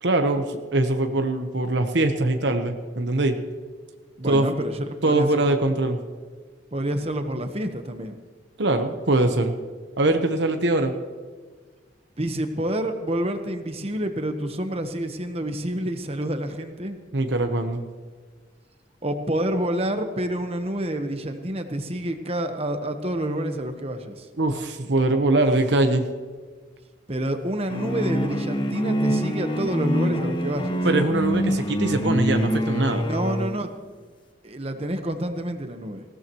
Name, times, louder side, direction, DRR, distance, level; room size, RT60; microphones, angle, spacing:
voice 1, 0.0-3.4 4.3-4.5 5.0-6.0 8.6-9.6 10.0-10.9 17.1-17.9 24.4-26.0 30.8-33.0, right 2 dB, 75° right, 6 dB, 1.0 m, -22 dB
voice 2, 4.2-5.6 6.7-8.2 12.2-17.0 19.0-24.3 27.1-30.8 33.0-33.7 34.4-36.0, right 1 dB, 35° right, 7 dB, 1.1 m, -28 dB
sound 1, 27.7-33.6, equal, 25° left, 1.1 m, -25 dB
19.5 x 16.5 x 3.1 m, 1.5 s
head